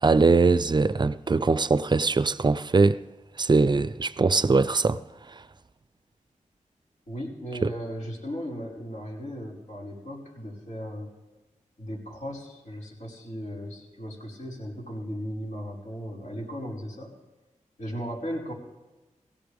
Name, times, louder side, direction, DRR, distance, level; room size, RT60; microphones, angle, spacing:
voice 1, 0.0-3.0 3.4-5.0 7.6-7.7, right 4 dB, 35° right, 0.5 m, -21 dB
voice 2, 7.1-11.1 11.8-17.1 17.8-18.5, equal, 65° left, 5.4 m, -36 dB
18.0 x 16.0 x 3.5 m
cardioid pair, 60°, 13 cm